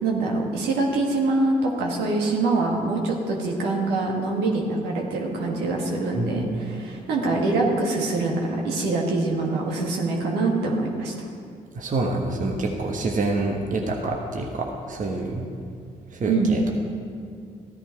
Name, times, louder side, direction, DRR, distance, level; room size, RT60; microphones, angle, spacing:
voice 1, 0.0-11.1 16.3-16.5, right 3 dB, 80° right, -1 dB, 1.8 m, -24 dB
voice 2, 6.2-6.5 11.7-15.5 16.1-16.7, right 2 dB, 50° right, 1 dB, 1.3 m, -27 dB
14.0 x 10.0 x 4.6 m, 2.3 s
hypercardioid pair, 45°, 17 cm